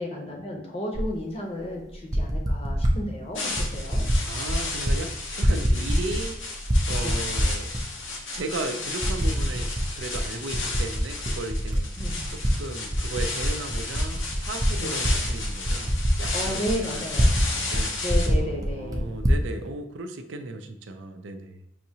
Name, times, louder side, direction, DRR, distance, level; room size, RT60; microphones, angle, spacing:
voice 1, 0.0-4.0 7.0-7.1 12.0-12.2 14.8-15.0 16.3-17.4 18.0-19.2, left 1 dB, 30° left, 0 dB, 0.7 m, -33 dB
Typing, 0.9-1.1 1.9-3.0 3.6-4.2 4.5-5.0 5.2-6.3 6.6-7.8 8.4-8.5 9.0-9.9 10.1-12.5 12.9-17.5 17.7-17.8 18.1-19.4, equal, 20° right, 0.4 m, -24 dB
sound 1, 3.3-18.3, left 3 dB, 85° left, 0.8 m, -34 dB
voice 2, 4.2-6.4 6.9-7.7 8.3-9.7 10.0-11.9 12.3-15.9 16.2-17.9 18.4-21.6, right 2 dB, 75° right, 7 dB, 0.4 m, -36 dB
5.7 x 2.7 x 2.8 m, 0.85 s
head